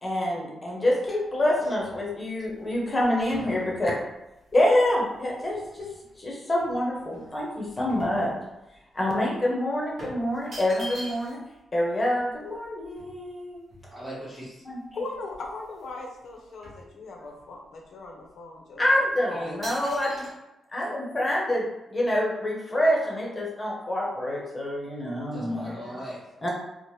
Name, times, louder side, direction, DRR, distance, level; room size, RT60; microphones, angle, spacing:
voice 1, 0.0-4.0 4.5-5.8 6.2-8.3 8.9-11.4 11.7-13.6 14.7-14.8 18.8-20.3 20.7-25.8 26.4-26.5, left 1 dB, 20° left, -3 dB, 0.7 m, -26 dB
sound 1, 1.0-6.1 6.6-8.8 9.1-9.2 10.0-11.6 11.9-12.0 12.1-14.3 14.8-14.9 15.2-16.0 16.2-17.5 18.1-18.2 18.8-19.1 19.6-20.3, equal, 45° right, 1.1 m, -45 dB
voice 2, 13.9-14.6 19.3-19.6 19.9-20.3 25.3-26.3, right 1 dB, 20° right, -10 dB, 0.9 m, -40 dB
voice 3, 14.9-19.1 25.5-25.9, left 3 dB, 60° left, 0 dB, 0.6 m, -39 dB
2.9 x 2.1 x 3.1 m, 0.97 s
wide cardioid pair, 140°, 0 cm